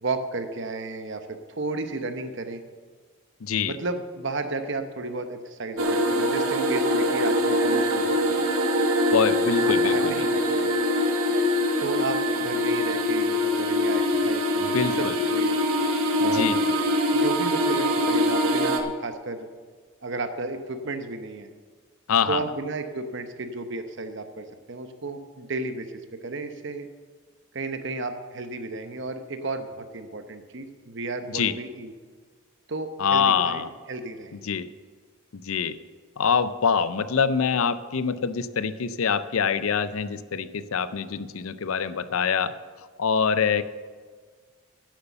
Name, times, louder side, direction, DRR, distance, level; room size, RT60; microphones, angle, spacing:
voice 1, 0.0-2.6 3.7-8.5 9.7-10.8 11.8-15.6 16.2-16.5 17.1-19.5 20.0-21.5 22.3-25.9 26.2-26.9 27.5-31.9 32.7-33.6 33.9-34.4, right 3 dB, 55° right, 8 dB, 0.9 m, -33 dB
voice 2, 3.4-3.8 9.1-10.3 14.7-15.2 16.2-16.7 22.1-22.4 31.3-31.5 33.0-33.7 34.4-34.7 35.4-35.8 36.2-42.5 43.0-43.6, left 6 dB, 75° left, 14 dB, 0.5 m, -25 dB
sound 1, 5.8-18.8, left 1 dB, 75° right, 1.2 m, -23 dB
11.0 x 8.2 x 6.9 m, 1.5 s
head